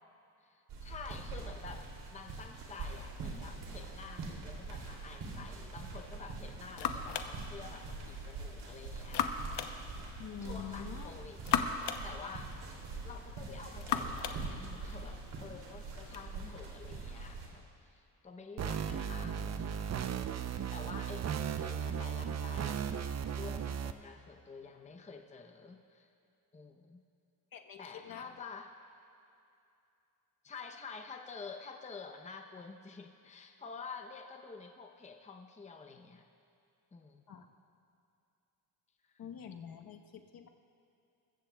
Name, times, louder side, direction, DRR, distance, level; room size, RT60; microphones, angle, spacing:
voice 1, 0.4-9.4 9.9-10.1 10.4-12.5 13.0-23.0 23.4-26.1 26.5-27.0 27.8-28.7 30.4-36.2 36.9-37.5, left 4 dB, 20° left, 4 dB, 0.7 m, -49 dB
sound 1, 0.7-17.5, right 3 dB, 85° right, 2.9 m, -44 dB
sound 2, 6.1-16.3, left 8 dB, 85° left, 0.8 m, -39 dB
voice 2, 10.2-11.1 27.5-28.4 37.3-37.5 39.2-40.5, left 8 dB, 60° left, 4 dB, 1.1 m, -46 dB
sound 3, 18.6-23.9, right 8 dB, 40° right, 0.6 m, -36 dB
21.5 x 15.5 x 2.3 m, 2.7 s
cardioid pair, 100°, 40 cm